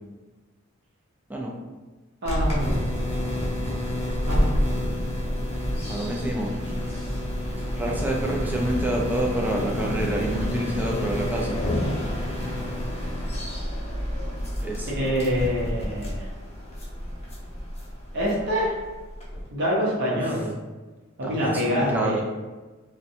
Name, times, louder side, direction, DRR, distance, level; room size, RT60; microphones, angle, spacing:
voice 1, 2.2-2.9 4.3-4.6 14.9-16.2 18.1-18.7 19.5-20.5 21.2-22.2, equal, 55° right, -6 dB, 0.6 m, -25 dB
sound 1, 2.3-19.5, left 1 dB, 30° left, 0.7 m, -29 dB
voice 2, 5.9-6.6 7.8-11.6 14.6-15.1 20.1-20.2 21.2-22.2, right 1 dB, 10° right, -2 dB, 0.3 m, -28 dB
2.5 x 2.1 x 2.6 m, 1.2 s
head